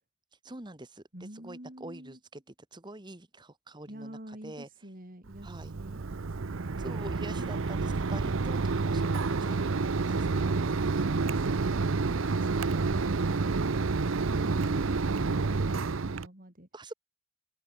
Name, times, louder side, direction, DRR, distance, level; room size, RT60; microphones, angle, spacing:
voice 1, 0.3-4.7 5.4-5.7 6.8-10.5 16.7-16.9, right 2 dB, 20° right, 1.4 m, -45 dB
voice 2, 1.1-2.2 3.9-6.7 10.9-11.7 12.1-14.0 14.3-16.7, right 1 dB, 45° right, 3.8 m, -46 dB
Mechanisms, 5.3-16.3, right 4 dB, 75° right, 0.7 m, -29 dB
head